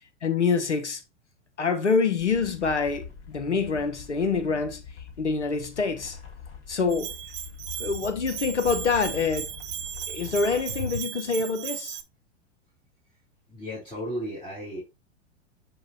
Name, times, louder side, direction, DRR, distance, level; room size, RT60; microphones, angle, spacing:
voice 1, 0.2-1.0 1.6-4.8 5.2-6.2 6.7-7.1 7.8-9.5 10.1-12.0, left 4 dB, 90° left, 1.0 m, -26 dB
sound 1, 2.2-10.9, left 6 dB, 40° left, 1.9 m, -43 dB
Bell, 6.9-12.0, right 11 dB, 30° right, 0.6 m, -36 dB
voice 2, 13.5-14.8, equal, 15° left, 4.1 m, -34 dB
7.6 x 4.9 x 2.8 m
figure-of-eight pair, 100°, 34 cm